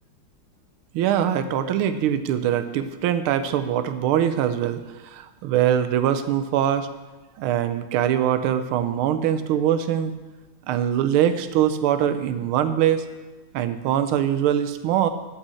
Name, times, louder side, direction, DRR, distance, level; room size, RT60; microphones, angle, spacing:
voice 1, 0.9-6.9 7.4-10.1 10.7-13.1 13.5-15.1, right 10 dB, 85° right, 11 dB, 1.5 m, -22 dB
8.4 x 5.7 x 7.7 m, 1.2 s
omnidirectional pair, 2.3 m